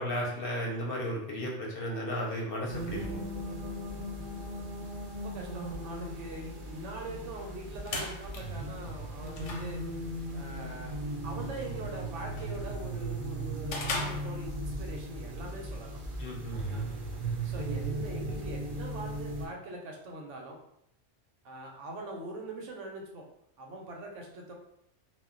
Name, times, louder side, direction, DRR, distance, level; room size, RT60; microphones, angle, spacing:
voice 1, 0.0-3.1 16.2-16.9, equal, 60° left, -1 dB, 0.7 m, -34 dB
sound 1, 2.7-19.5, right 1 dB, 55° right, 0.6 m, -37 dB
voice 2, 5.2-10.0 10.3-11.0 11.2-16.0 16.7-16.9 17.4-20.6 21.4-23.3 23.6-24.5, right 2 dB, 80° right, 1 dB, 0.9 m, -42 dB
sound 2, 7.5-14.9, left 2 dB, 85° left, 0.9 m, -42 dB
2.2 x 2.1 x 3.6 m, 0.75 s
omnidirectional pair, 1.2 m